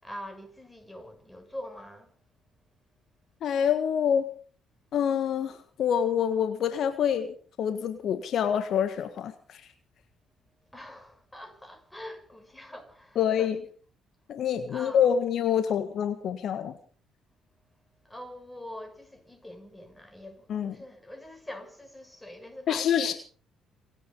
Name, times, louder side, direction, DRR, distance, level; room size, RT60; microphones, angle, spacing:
voice 1, 0.0-2.1 10.7-13.5 14.7-15.2 18.1-23.2, left 1 dB, 10° left, 6.8 m, -44 dB
voice 2, 3.4-4.2 4.9-7.3 7.6-9.6 13.1-13.6 14.3-16.7 20.5-20.7 22.7-23.1, left 8 dB, 60° left, 1.6 m, -26 dB
27.5 x 9.4 x 5.5 m
hypercardioid pair, 50°, 0 cm